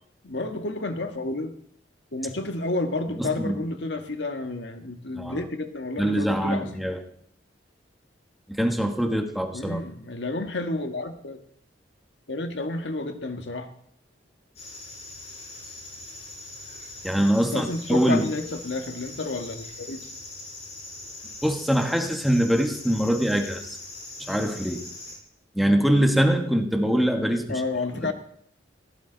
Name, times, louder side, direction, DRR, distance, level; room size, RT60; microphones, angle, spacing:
voice 1, 0.2-1.6 2.1-6.7 9.5-11.4 12.3-13.7 17.4-20.1 27.5-28.1, left 2 dB, 70° left, 6 dB, 1.7 m, -30 dB
voice 2, 3.2-3.5 5.1-5.5 6.0-7.0 8.5-9.8 17.0-18.2 21.4-23.8 24.2-24.8 25.5-27.6 28.0-28.1, equal, ahead, 4 dB, 1.5 m, -23 dB
sound 1, 14.6-25.2, left 2 dB, 35° left, 6.2 m, -41 dB
20.5 x 17.0 x 4.0 m, 0.68 s
head